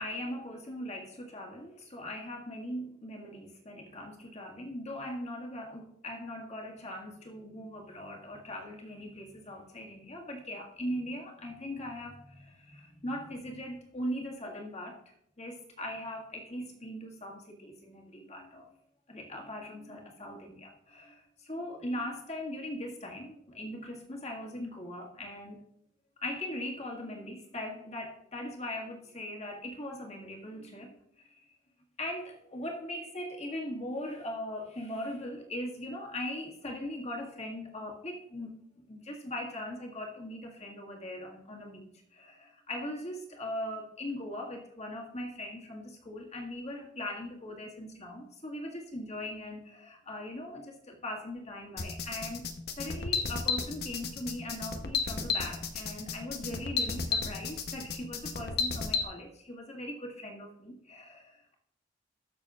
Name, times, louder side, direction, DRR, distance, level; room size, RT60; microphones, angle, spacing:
voice 1, 0.0-15.0 15.4-18.7 19.1-25.6 26.2-30.9 31.2-31.5 32.0-52.5 52.8-61.5, left 1 dB, 35° left, 0 dB, 1.9 m, -40 dB
sound 1, 51.8-59.0, left 5 dB, 55° left, 0.9 m, -32 dB
20.0 x 6.7 x 2.4 m, 0.75 s
head